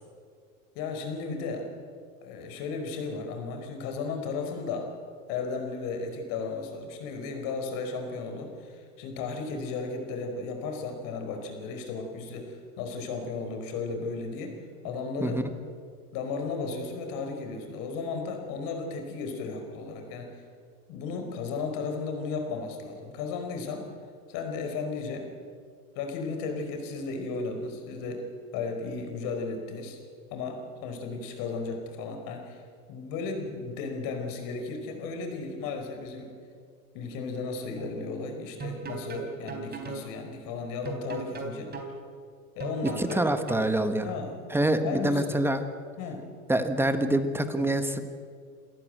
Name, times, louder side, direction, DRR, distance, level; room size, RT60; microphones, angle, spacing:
voice 1, 0.7-1.7 2.2-4.9 5.3-14.6 14.8-15.4 16.1-20.4 20.9-23.9 24.3-25.3 25.9-28.2 28.5-30.0 30.3-32.6 32.9-36.3 36.9-41.7 42.5-43.2 44.0-44.4 44.8-45.3 46.0-46.3, left 4 dB, 50° left, 4 dB, 5.0 m, -34 dB
sound 1, 37.8-37.9 38.6-40.1 40.9-41.9 42.6-43.7, right 6 dB, 20° right, 3.7 m, -37 dB
voice 2, 43.0-44.1 44.5-45.6 46.5-48.0, right 1 dB, 5° right, 8 dB, 1.4 m, -26 dB
28.5 x 14.5 x 7.9 m, 2.2 s
hypercardioid pair, 115°, 44 cm